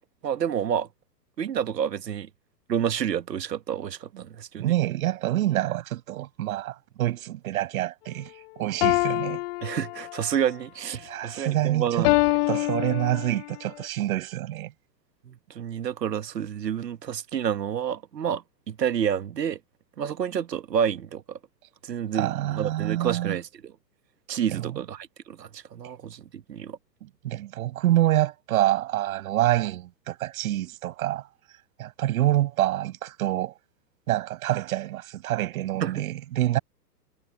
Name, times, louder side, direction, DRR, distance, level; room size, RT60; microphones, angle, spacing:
voice 1, 0.2-0.9 1.4-2.3 2.7-4.7 9.6-12.2 15.3-19.6 20.0-21.4 21.8-23.7 24.3-26.8 35.8-36.0, right 8 dB, 80° right, 1.8 m, -29 dB
voice 2, 4.6-9.4 11.0-12.1 12.5-14.7 22.1-23.4 24.5-24.7 27.2-31.2 31.8-33.5 34.1-36.6, right 14 dB, 55° right, 6.7 m, -26 dB
sound 1, 8.8-10.4 12.0-13.5, left 22 dB, 35° left, 1.0 m, -25 dB
hypercardioid pair, 120°, 49 cm